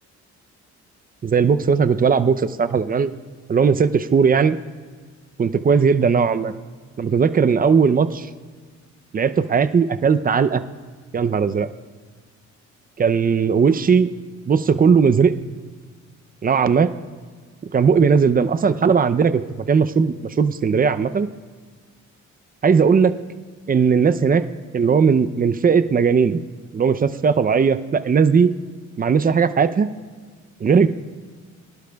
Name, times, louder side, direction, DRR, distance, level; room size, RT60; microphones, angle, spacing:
voice 1, 1.2-3.1 3.5-4.6 5.4-6.5 7.0-8.3 9.1-10.6 11.1-11.7 13.0-14.1 14.5-15.3 16.4-16.9 17.7-19.4 19.7-21.3 22.6-23.1 23.7-24.4 24.7-26.4 26.7-28.5 29.0-29.9 30.6-30.9, right 6 dB, 30° right, 11 dB, 0.6 m, -17 dB
23.5 x 11.5 x 2.3 m, 1.5 s
cardioid pair, 90°, 30 cm